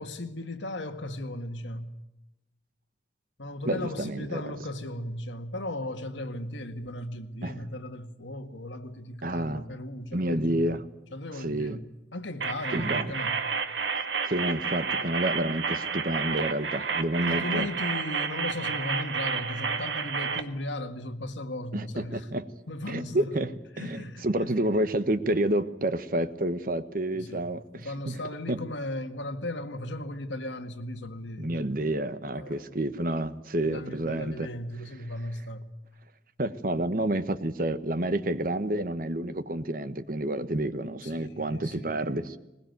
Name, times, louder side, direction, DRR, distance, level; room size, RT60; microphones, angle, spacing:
voice 1, 0.0-1.9 3.4-10.8 11.1-11.8 12.1-13.4 17.3-22.3 22.7-23.4 23.7-24.6 27.1-27.4 27.7-31.5 31.8-31.9 32.4-32.6 33.6-35.7 36.8-36.9 41.0-41.9, left 1 dB, 80° left, 1.9 m, -36 dB
voice 2, 3.7-4.4 7.4-7.6 9.2-9.6 10.1-10.9 11.4-11.8 12.7-13.1 14.2-17.7 21.7-22.4 22.9-28.2 28.5-28.6 31.4-34.5 36.4-42.4, right 1 dB, 45° right, 1.2 m, -29 dB
sound 1, 12.4-20.4, right 5 dB, 75° right, 1.6 m, -30 dB
21.0 x 20.5 x 9.3 m
head